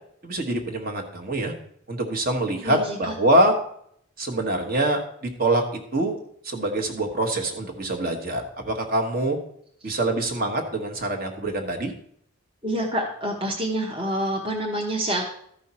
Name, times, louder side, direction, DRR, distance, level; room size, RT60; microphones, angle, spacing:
voice 1, 0.2-1.5 1.9-3.5 4.2-5.6 5.9-6.2 6.4-9.4 9.8-11.9, right 1 dB, 45° right, 3 dB, 1.3 m, -24 dB
voice 2, 2.5-3.1 9.8-10.0 12.6-15.3, right 1 dB, 25° right, -1 dB, 0.9 m, -27 dB
13.5 x 5.6 x 4.3 m, 0.67 s
head